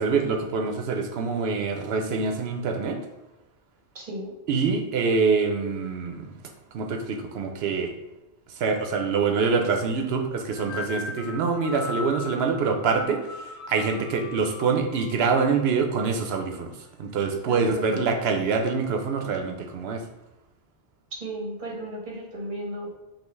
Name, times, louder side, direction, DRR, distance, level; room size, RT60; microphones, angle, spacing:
voice 1, 0.0-3.0 4.5-6.3 6.7-7.9 8.6-20.0, right 5 dB, 85° right, 4 dB, 0.9 m, -25 dB
voice 2, 3.9-4.4 17.4-18.0 21.2-22.9, right 1 dB, 55° right, -2 dB, 1.2 m, -35 dB
sound 1, 10.5-15.6, left 4 dB, 90° left, 0.9 m, -38 dB
5.5 x 2.4 x 3.1 m, 0.95 s
omnidirectional pair, 1.0 m